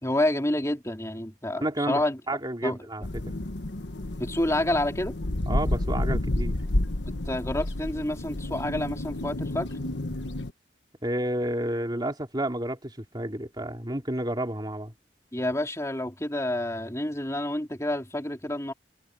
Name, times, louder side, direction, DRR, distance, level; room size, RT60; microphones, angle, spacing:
voice 1, 0.0-2.2 2.6-2.8 4.2-5.1 7.3-9.7 15.3-18.7, left 1 dB, 15° left, 3.5 m, -28 dB
voice 2, 1.6-2.0 2.3-3.2 5.5-6.6 11.0-14.9, right 1 dB, 25° right, 3.0 m, -30 dB
sound 1, 3.0-10.5, left 1 dB, 85° left, 1.3 m, -30 dB
head